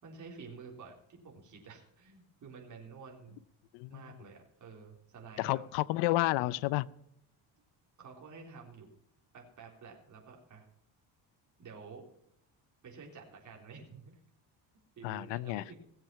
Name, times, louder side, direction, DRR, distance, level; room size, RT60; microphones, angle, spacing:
voice 1, 0.0-3.4 3.9-5.6 8.0-8.9 9.3-10.7 11.6-12.0 12.8-14.2 15.0-15.8, right 5 dB, 45° right, 0 dB, 3.7 m, -50 dB
voice 2, 5.4-6.9 15.0-15.6, left 19 dB, 90° left, 19 dB, 0.6 m, -31 dB
18.0 x 7.4 x 5.8 m, 0.75 s
cardioid pair, 110°, 40 cm